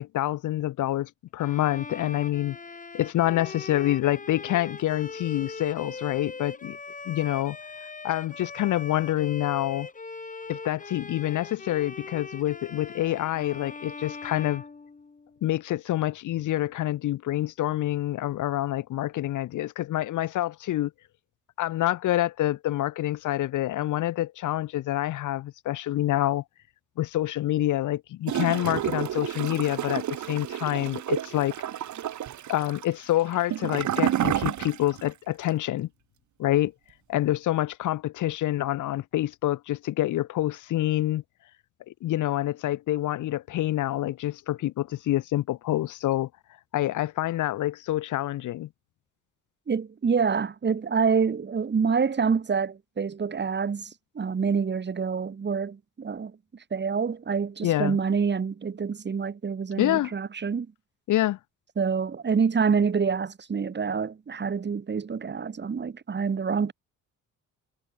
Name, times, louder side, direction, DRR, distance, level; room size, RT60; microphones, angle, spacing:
voice 1, 0.0-2.6 2.9-6.8 7.1-7.6 8.0-9.9 10.5-14.6 15.4-20.9 21.6-26.4 27.0-31.5 32.5-35.9 36.4-36.7 37.1-41.2 41.9-46.3 46.7-48.7 57.6-58.0 59.8-60.1 61.1-61.4, left 14 dB, 80° left, 2.1 m, -27 dB
Bowed string instrument, 1.4-15.5, left 4 dB, 25° left, 4.0 m, -40 dB
Gurgling / Toilet flush, 28.2-35.1 35.4-35.5, right 11 dB, 70° right, 6.0 m, -30 dB
voice 2, 49.7-56.3 56.7-60.7 61.8-66.7, right 6 dB, 35° right, 2.5 m, -27 dB
cardioid pair, 90°, 30 cm